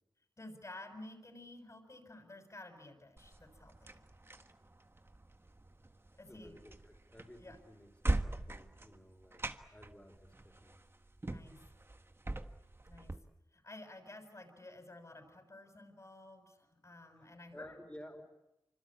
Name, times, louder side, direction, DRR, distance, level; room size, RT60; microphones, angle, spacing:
voice 1, 0.4-4.0 6.2-6.6 7.4-7.6 11.2-11.6 12.9-13.2 13.5-17.7, left 2 dB, 40° left, 4 dB, 6.5 m, -52 dB
sound 1, 3.2-13.2, right 2 dB, 30° right, 1.6 m, -42 dB
voice 2, 6.3-10.8 17.5-18.2, equal, 15° left, 5 dB, 5.1 m, -55 dB
26.5 x 25.5 x 8.7 m, 0.90 s
wide cardioid pair, 70°, 8 cm